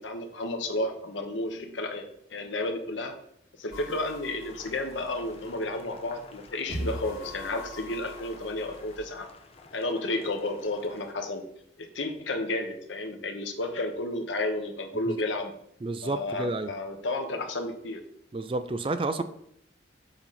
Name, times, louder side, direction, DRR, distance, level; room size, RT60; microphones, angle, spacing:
voice 1, 0.0-3.2 3.5-9.3 9.7-11.5 11.8-15.5 16.0-18.0 19.1-19.2, left 2 dB, 80° left, 5 dB, 1.1 m, -32 dB
sound 1, 3.7-9.0, left 1 dB, 50° left, 2.6 m, -41 dB
Boiling, 4.3-11.1, left 3 dB, 30° left, 0.7 m, -52 dB
voice 2, 15.8-16.7 18.3-19.2, right 2 dB, 30° right, 11 dB, 0.4 m, -30 dB
7.1 x 3.9 x 5.7 m, 0.72 s
head